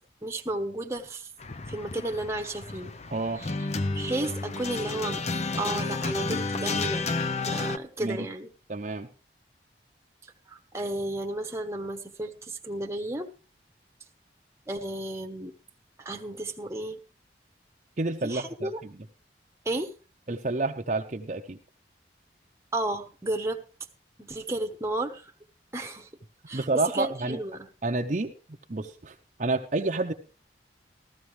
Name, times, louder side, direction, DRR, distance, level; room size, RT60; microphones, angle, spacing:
voice 1, 0.2-1.3 1.7-2.9 3.4-3.5 3.9-5.2 5.6-7.1 7.4-8.5 10.5-13.3 14.7-15.5 16.0-17.0 18.2-18.8 19.6-19.9 22.7-23.6 24.2-25.2 25.7-26.1 26.5-26.7 26.9-27.7, right 2 dB, 15° right, 4 dB, 1.1 m, -33 dB
sound 1, 1.4-7.8, left 3 dB, 40° left, 0.6 m, -31 dB
voice 2, 3.1-3.4 8.0-8.2 8.7-9.1 18.0-18.9 20.3-21.6 26.5-27.4 27.8-28.3 28.7-30.1, right 2 dB, 40° right, 3 dB, 0.7 m, -29 dB
14.0 x 14.0 x 3.2 m, 0.34 s
head